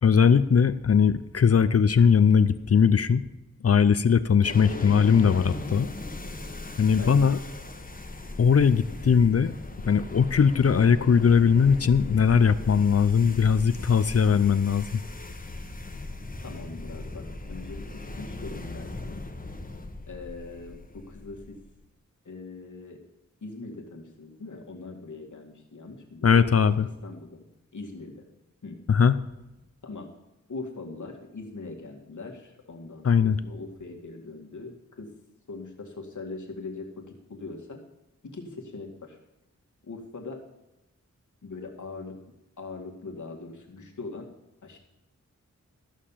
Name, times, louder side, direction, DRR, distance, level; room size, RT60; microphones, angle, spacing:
voice 1, 0.0-3.3 3.6-5.9 6.8-7.4 8.4-9.5 9.9-15.0 26.2-26.9 28.9-29.2 33.0-33.4, left 6 dB, 55° left, 13 dB, 0.6 m, -20 dB
sound 1, 4.4-21.8, left 2 dB, 30° left, 1.2 m, -39 dB
voice 2, 7.0-7.3 16.4-19.2 20.1-21.6 22.3-23.0 23.4-26.6 27.0-27.4 27.7-28.2 28.6-28.8 29.8-30.1 30.5-35.1 35.5-37.8 38.2-39.2 39.8-40.4 41.4-42.2 42.6-44.3 44.6-44.8, left 3 dB, 90° left, 1 dB, 2.1 m, -41 dB
14.0 x 6.6 x 7.3 m, 0.95 s
wide cardioid pair, 95°, 29 cm